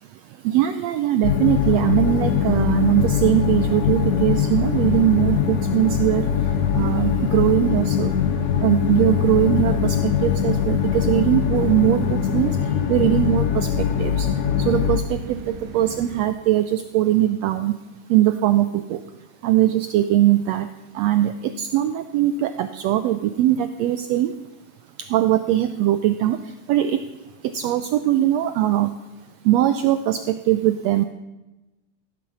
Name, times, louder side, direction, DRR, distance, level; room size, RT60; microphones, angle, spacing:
voice 1, 0.4-6.2 6.7-8.1 8.6-12.6 12.9-13.7 14.0-14.3 14.6-15.4 15.7-17.7 18.1-19.0 19.4-20.7 20.9-24.3 25.1-26.4 26.7-27.0 27.5-28.9 29.4-31.0, right 13 dB, 90° right, 10 dB, 1.4 m, -20 dB
sound 1, 1.2-15.0, left 8 dB, 70° left, 1.9 m, -22 dB
sound 2, 1.5-16.3, right 4 dB, 60° right, 2.4 m, -38 dB
15.5 x 9.5 x 7.2 m, 1.0 s
omnidirectional pair, 3.7 m